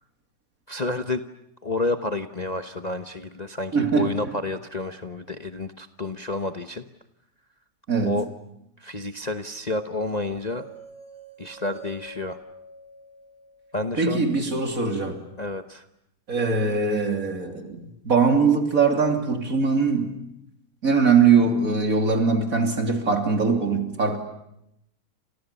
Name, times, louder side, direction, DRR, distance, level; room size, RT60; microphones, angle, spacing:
voice 1, 0.7-1.2 1.6-6.8 8.0-8.3 8.8-10.6 11.4-12.4 13.7-14.2 15.4-15.8, left 2 dB, 30° left, 1.1 m, -30 dB
voice 2, 3.7-4.3 7.9-8.2 14.0-15.2 16.3-20.2 20.8-24.2, right 5 dB, 55° right, 3.6 m, -21 dB
sound 1, 10.1-14.2, right 2 dB, 25° right, 4.1 m, -46 dB
29.5 x 28.0 x 7.1 m
omnidirectional pair, 1.8 m